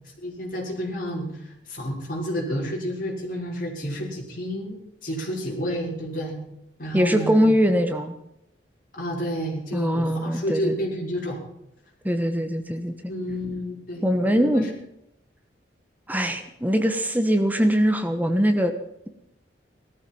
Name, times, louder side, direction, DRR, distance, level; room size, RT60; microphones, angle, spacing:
voice 1, 0.2-6.4 6.8-7.6 8.9-11.4 13.1-14.7, equal, 50° left, -3 dB, 5.8 m, -30 dB
voice 2, 6.9-8.1 9.7-10.7 12.0-12.9 14.0-14.7 16.1-18.7, equal, 10° right, 7 dB, 1.2 m, -22 dB
17.5 x 13.5 x 5.6 m, 0.81 s
head